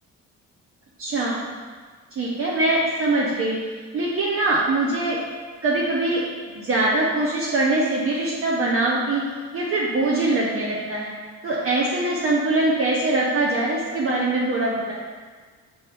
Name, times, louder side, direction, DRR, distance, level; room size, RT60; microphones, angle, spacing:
voice 1, 1.0-1.4 2.2-3.6 3.9-5.2 5.6-6.2 6.5-9.2 9.5-11.1 11.4-14.9, right 2 dB, 45° right, -4 dB, 0.6 m, -22 dB
4.6 x 2.7 x 3.3 m, 1.5 s
cardioid pair, 90°, 30 cm